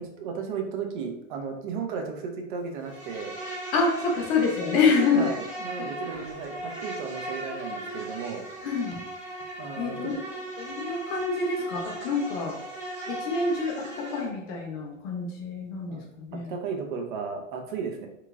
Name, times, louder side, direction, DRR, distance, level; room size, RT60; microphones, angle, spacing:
voice 1, 0.0-3.3 5.1-8.5 9.6-10.1 15.9-16.0 16.5-18.1, right 5 dB, 40° right, 3 dB, 0.6 m, -34 dB
Insect, 2.8-14.3, right 2 dB, 75° right, 1.1 m, -38 dB
voice 2, 3.7-5.3 5.8-6.2 8.6-9.0 9.8-10.1 10.6-12.6 13.1-16.5, left 4 dB, 20° left, -1 dB, 0.3 m, -27 dB
2.9 x 2.6 x 2.3 m, 0.84 s
figure-of-eight pair, 95°, 38 cm